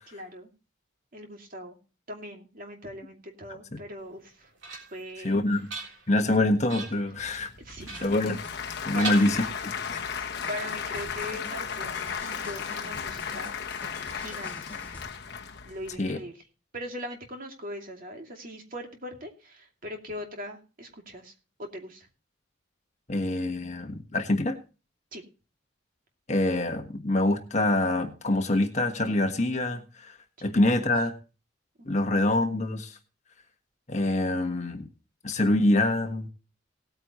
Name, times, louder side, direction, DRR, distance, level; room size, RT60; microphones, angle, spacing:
voice 1, 0.1-0.5 1.1-1.8 2.1-4.5 4.9-5.4 7.6-8.1 8.9-9.4 10.5-13.5 14.1-14.7 15.6-16.4 16.7-21.3 21.6-22.1 25.1-25.2 30.4-30.8, equal, 45° right, 3 dB, 2.6 m, -40 dB
sound 1, 4.1-5.1 5.5-6.3 6.7-7.1 7.8-8.7 9.0-9.9, right 3 dB, 65° right, 3.6 m, -39 dB
voice 2, 5.2-5.7 6.1-7.5 8.0-8.4 8.8-10.0 16.0-16.2 23.1-24.6 26.3-30.1 30.4-31.1 31.9-32.9 33.9-34.9 35.2-36.3, left 1 dB, 35° left, 5 dB, 1.5 m, -25 dB
Applause / Crowd, 7.2-16.0, left 6 dB, 60° left, 1.1 m, -35 dB
sound 2, 7.5-15.2, left 2 dB, 10° left, 3.0 m, -48 dB
18.5 x 9.0 x 3.0 m, 0.33 s
head